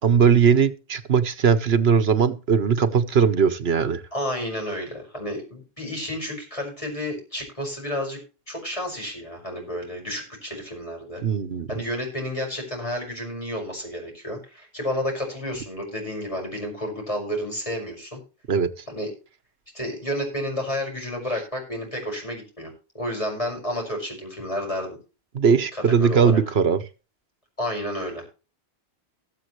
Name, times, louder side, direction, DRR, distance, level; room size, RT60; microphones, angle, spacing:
voice 1, 0.0-4.0 11.2-11.7 18.5-18.7 25.3-26.8, right 6 dB, 75° right, 13 dB, 1.3 m, -19 dB
voice 2, 4.1-8.2 8.5-11.2 11.7-18.2 18.9-19.1 19.7-25.0 25.7-26.4 27.6-28.3, left 1 dB, 30° left, 1 dB, 5.9 m, -31 dB
20.5 x 7.3 x 3.2 m, 0.33 s
omnidirectional pair, 1.1 m